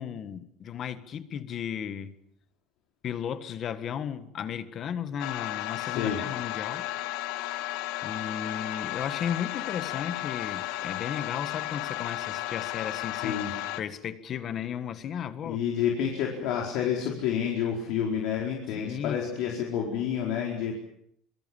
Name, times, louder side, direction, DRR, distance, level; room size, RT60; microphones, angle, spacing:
voice 1, 0.0-2.1 3.0-6.9 8.0-13.4 13.8-15.6 18.7-19.3, left 8 dB, 35° left, 1.6 m, -35 dB
sound 1, 5.2-13.8, left 15 dB, 90° left, 1.6 m, -34 dB
voice 2, 5.7-6.2 13.2-13.5 15.4-20.7, left 8 dB, 65° left, 4.6 m, -29 dB
25.5 x 24.5 x 7.2 m
cardioid pair, 160°, 0 cm